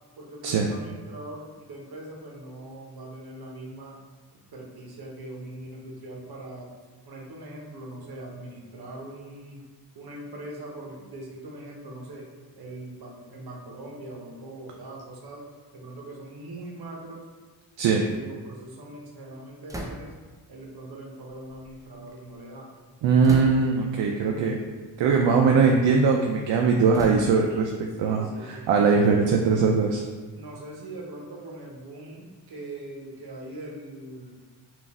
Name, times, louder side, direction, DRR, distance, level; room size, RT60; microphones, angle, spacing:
voice 1, 0.2-4.0 4.3-6.7 7.1-9.6 9.9-12.3 12.6-15.5 15.7-17.2 17.9-20.1 20.5-22.7 28.0-29.6 30.3-34.4, right 1 dB, 55° right, -1 dB, 1.0 m, -41 dB
sound 1, 19.7-20.4 21.3-22.4 23.2-23.9 24.7-24.9 25.4-26.1 26.9-27.7 28.4-30.3, right 1 dB, 10° right, 0.5 m, -40 dB
voice 2, 23.0-24.6 25.0-30.0, right 5 dB, 75° right, 1 dB, 0.5 m, -21 dB
3.8 x 2.5 x 3.5 m, 1.4 s
cardioid pair, 65°, 44 cm